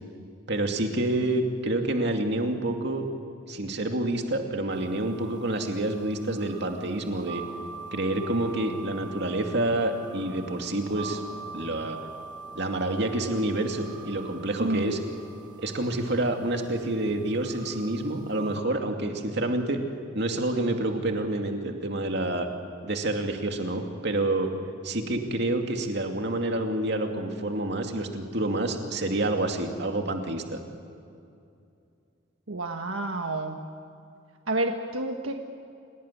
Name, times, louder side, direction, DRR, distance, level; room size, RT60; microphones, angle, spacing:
voice 1, 0.5-3.1 3.5-7.4 7.9-11.2 11.5-12.0 12.5-15.0 15.6-19.8 20.1-22.5 22.8-24.5 24.8-30.6, right 1 dB, 55° right, 4 dB, 2.6 m, -28 dB
sound 1, 4.7-18.6, right 4 dB, 20° right, 1.5 m, -44 dB
voice 2, 32.5-33.6 34.5-35.3, right 2 dB, 85° right, 4 dB, 1.5 m, -29 dB
28.0 x 18.5 x 9.9 m, 2.5 s
head